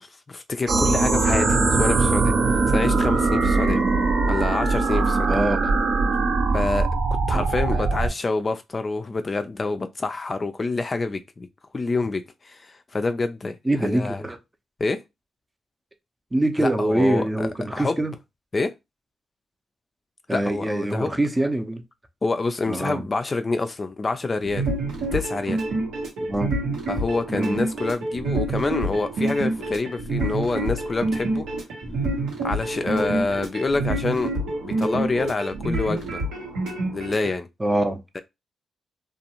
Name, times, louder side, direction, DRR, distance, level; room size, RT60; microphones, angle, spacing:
voice 1, 0.3-3.8 4.3-5.4 6.5-6.9 7.3-11.5 11.7-14.2 14.8-15.0 16.6-18.0 18.5-18.7 20.3-21.2 22.2-24.7 25.1-25.6 26.9-31.5 32.4-34.3 34.6-36.2 36.9-37.5 38.1-38.2, left 3 dB, 40° left, 0.4 m, -27 dB
sound 1, 0.7-8.1, right 3 dB, 70° right, 0.7 m, -21 dB
voice 2, 3.7-4.0 5.3-5.7 7.3-7.5 7.7-7.8 13.6-14.4 16.3-18.1 20.3-21.8 22.7-23.0 26.3-26.5 27.3-27.6 37.6-38.0, right 1 dB, 20° right, 0.6 m, -24 dB
sound 2, 24.4-37.3, right 2 dB, 85° right, 1.0 m, -27 dB
2.5 x 2.3 x 2.9 m
supercardioid pair, 55°, 0 cm